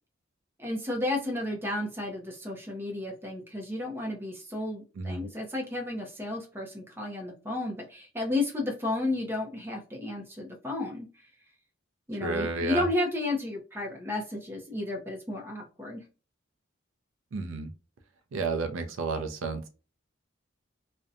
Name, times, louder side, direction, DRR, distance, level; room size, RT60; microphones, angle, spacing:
voice 1, 0.6-11.1 12.1-16.0, left 2 dB, 10° right, 1 dB, 0.5 m, -32 dB
voice 2, 12.2-12.9 17.3-17.7 18.3-19.6, right 3 dB, 75° right, 6 dB, 0.4 m, -31 dB
2.6 x 2.1 x 2.5 m, 0.33 s
head